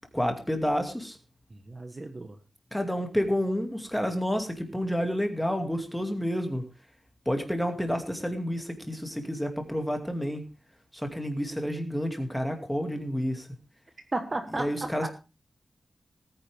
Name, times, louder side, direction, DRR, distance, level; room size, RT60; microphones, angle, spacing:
voice 1, 0.1-1.2 2.7-6.6 7.3-10.4 10.9-13.5 14.5-15.1, equal, 5° left, 5 dB, 2.3 m, -29 dB
voice 2, 1.5-2.4 14.1-15.1, right 2 dB, 30° right, 6 dB, 1.3 m, -34 dB
18.5 x 9.9 x 3.5 m, 0.30 s
wide cardioid pair, 160°, 0 cm